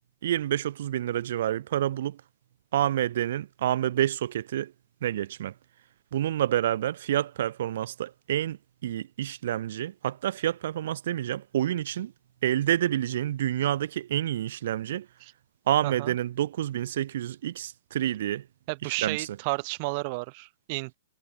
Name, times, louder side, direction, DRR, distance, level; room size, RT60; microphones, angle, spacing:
voice 1, 0.2-2.2 2.7-4.7 5.0-5.5 6.1-8.6 8.8-12.1 12.4-15.0 15.7-18.4 19.0-19.3, right 12 dB, 65° right, 1.6 m, -28 dB
voice 2, 15.8-16.2 18.7-20.9, right 29 dB, 45° right, 3.7 m, -32 dB
hypercardioid pair, 125°, 0 cm